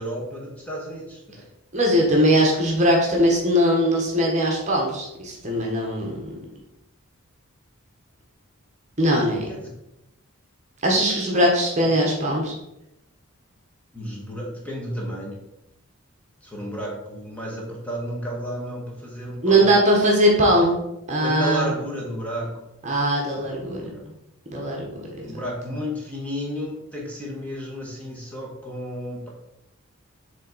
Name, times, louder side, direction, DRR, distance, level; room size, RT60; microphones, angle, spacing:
voice 1, 0.0-1.5 9.5-9.7 13.9-15.4 16.4-19.7 21.2-22.6 23.4-24.0 25.2-29.3, equal, 5° left, -4 dB, 1.3 m, -32 dB
voice 2, 1.7-6.3 9.0-9.5 10.8-12.5 19.4-20.8 21.1-21.7 22.8-23.8 24.5-25.3, equal, 30° right, -1 dB, 1.1 m, -20 dB
7.5 x 3.5 x 4.0 m, 0.88 s
head